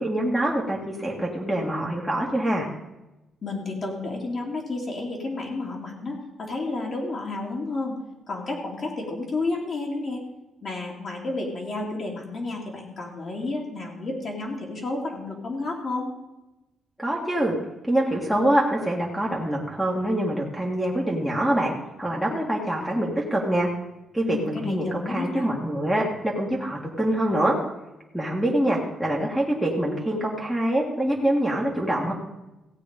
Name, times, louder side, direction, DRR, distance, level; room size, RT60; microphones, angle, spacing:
voice 1, 0.0-2.7 17.0-17.6 17.9-21.7 22.0-23.7 24.1-27.6 28.1-32.1, right 1 dB, ahead, -2 dB, 1.9 m, -25 dB
voice 2, 3.4-8.0 8.3-10.2 10.6-16.1 24.2-25.5, left 2 dB, 40° left, -1 dB, 2.7 m, -31 dB
16.0 x 8.4 x 5.2 m, 0.99 s
cardioid pair, 135°, 0 cm